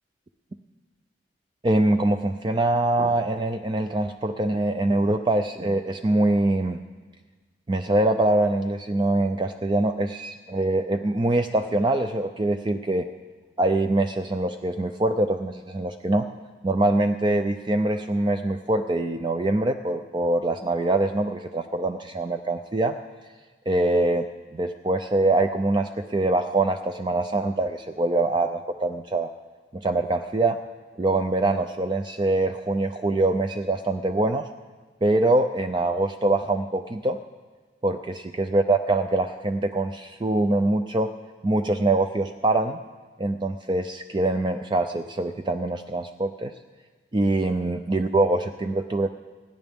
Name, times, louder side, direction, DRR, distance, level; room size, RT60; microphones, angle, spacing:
voice 1, 1.6-6.8 7.7-13.1 13.6-16.3 16.6-23.0 23.7-24.3 24.5-29.3 29.7-30.6 31.0-34.5 35.0-37.2 37.8-41.1 41.4-42.8 43.2-46.5 47.1-49.1, right 2 dB, 25° right, 7 dB, 0.4 m, -24 dB
28.0 x 10.0 x 3.6 m, 1.4 s
head